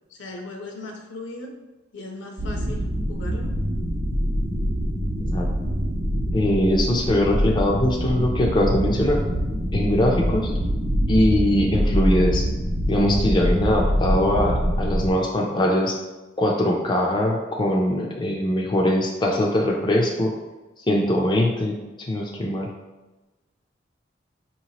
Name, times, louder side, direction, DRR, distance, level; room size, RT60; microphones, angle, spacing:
voice 1, 0.1-1.6 1.9-3.5, left 2 dB, 70° left, 3 dB, 0.7 m, -37 dB
sound 1, 2.4-15.1, equal, 85° right, 0.9 m, -24 dB
voice 2, 6.3-9.2 9.7-10.5 11.1-12.5 12.9-16.0 16.4-20.3 20.9-22.7, left 1 dB, 25° left, 0 dB, 0.4 m, -21 dB
5.3 x 2.9 x 2.8 m, 1.1 s
head